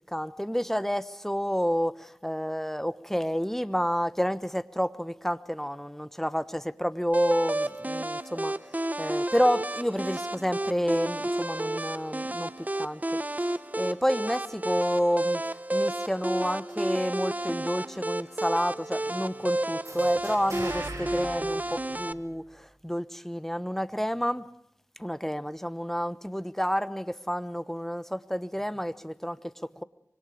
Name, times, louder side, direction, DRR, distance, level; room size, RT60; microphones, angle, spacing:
voice 1, 0.1-8.6 9.0-12.5 12.8-13.0 13.8-15.4 15.7-24.4 25.0-29.8, equal, 5° left, 1.1 m, -29 dB
sound 1, 7.1-22.1, right 1 dB, 30° right, 0.9 m, -31 dB
sound 2, 19.8-22.6, right 2 dB, 65° right, 6.7 m, -42 dB
25.5 x 25.0 x 5.2 m
wide cardioid pair, 50°, 6 cm